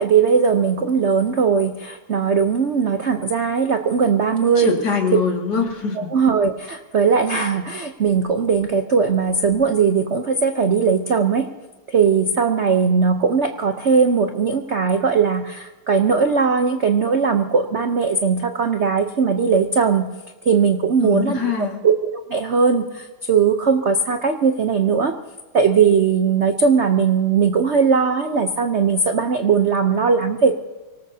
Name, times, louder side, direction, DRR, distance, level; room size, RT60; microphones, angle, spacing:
voice 1, 0.0-4.8 6.0-11.5 11.9-20.1 20.4-25.1 25.5-30.6, right 5 dB, 80° right, 6 dB, 0.6 m, -19 dB
voice 2, 4.6-6.1 21.0-21.8, left 5 dB, 50° left, 1 dB, 2.6 m, -23 dB
25.0 x 18.5 x 2.8 m, 1.2 s
omnidirectional pair, 2.4 m